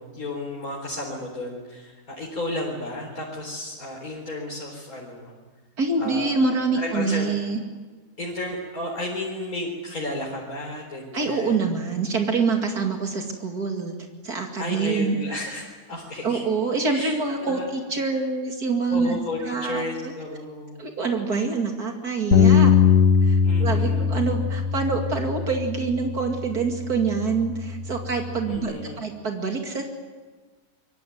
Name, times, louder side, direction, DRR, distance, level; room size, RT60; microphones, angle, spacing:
voice 1, 0.0-5.3 6.0-7.3 8.2-11.6 14.6-16.4 16.9-17.7 18.1-18.2 18.9-20.8 23.4-24.1 28.4-29.0, left 1 dB, 65° left, -2 dB, 4.5 m, -33 dB
voice 2, 5.8-7.6 11.1-13.9 14.2-15.2 16.2-20.1 20.8-22.7 23.2-29.8, right 4 dB, 75° right, 2 dB, 2.9 m, -26 dB
Bass guitar, 22.3-28.6, left 7 dB, 85° left, 2.0 m, -21 dB
26.5 x 23.5 x 9.4 m, 1.4 s
omnidirectional pair, 1.6 m